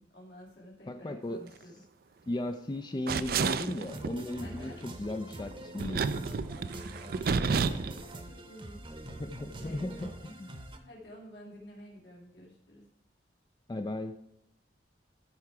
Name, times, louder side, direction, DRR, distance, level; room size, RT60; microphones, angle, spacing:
voice 1, 0.0-1.7 2.1-2.2 4.4-4.8 7.0-9.3 9.5-10.1 10.8-12.8, equal, 80° left, -4 dB, 2.5 m, -50 dB
voice 2, 0.9-1.4 2.3-6.4 9.1-10.5 13.7-14.2, left 1 dB, 25° left, 7 dB, 0.4 m, -36 dB
sound 1, 3.1-4.2 5.8-8.0, right 5 dB, 55° right, 0.4 m, -30 dB
sound 2, 3.9-10.8, right 1 dB, 30° right, 0.9 m, -45 dB
13.5 x 4.7 x 4.7 m, 0.78 s
head